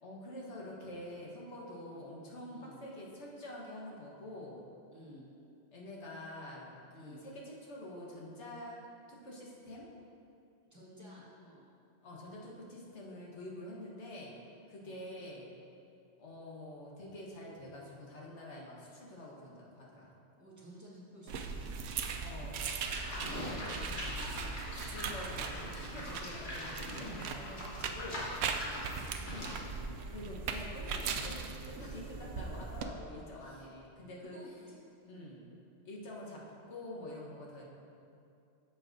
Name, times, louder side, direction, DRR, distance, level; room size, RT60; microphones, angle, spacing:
voice 1, 0.0-4.6 5.7-8.8 9.1-9.9 12.0-14.3 14.7-15.5 16.2-20.1 22.2-23.1 24.9-28.3 30.1-34.4 35.1-35.4 35.8-36.4 36.7-37.6, left 1 dB, 70° left, -4 dB, 1.6 m, -47 dB
voice 2, 2.5-2.8 4.9-5.3 6.9-7.2 10.7-11.7 14.8-15.0 20.3-21.9 23.2-24.9 25.9-26.2 28.6-29.0 31.8-32.1 33.4-33.7 34.3-35.3, equal, 15° right, -8 dB, 1.6 m, -54 dB
sound 1, 21.3-32.8, right 5 dB, 70° right, 0.8 m, -39 dB
Livestock farm animals working animals, 22.9-29.6, left 1 dB, 45° left, 1.5 m, -42 dB
11.0 x 6.9 x 2.7 m, 2.6 s
omnidirectional pair, 1.2 m